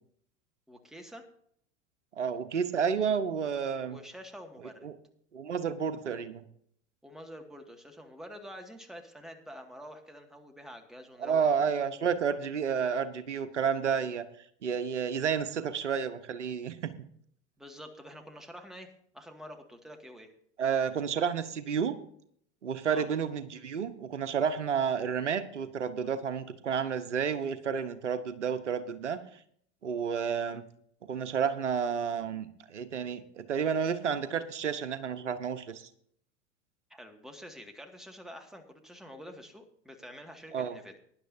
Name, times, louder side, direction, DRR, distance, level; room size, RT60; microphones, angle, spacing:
voice 1, 0.7-1.2 3.9-4.9 7.0-11.7 17.6-20.3 22.9-23.1 36.9-40.9, equal, ahead, 4 dB, 2.0 m, -47 dB
voice 2, 2.2-4.0 4.8-4.9 5.3-6.4 11.2-14.3 14.6-16.9 20.6-22.0 22.6-29.2 29.8-30.6 31.1-35.9 40.5-40.7, right 7 dB, 80° right, 11 dB, 1.1 m, -31 dB
19.0 x 10.5 x 2.7 m, 0.65 s
figure-of-eight pair, 85°, 35 cm